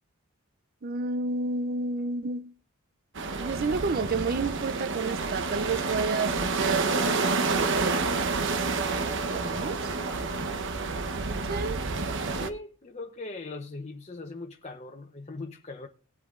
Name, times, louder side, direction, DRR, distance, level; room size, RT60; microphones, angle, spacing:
voice 1, 0.8-2.5 3.4-7.1 7.7-8.2 9.3-9.9 11.5-11.9, right 3 dB, 45° right, 0.5 m, -30 dB
sound 1, 3.1-12.5, right 3 dB, 60° right, 0.9 m, -29 dB
voice 2, 12.3-15.9, left 2 dB, 30° left, 0.8 m, -40 dB
19.5 x 8.3 x 2.5 m
head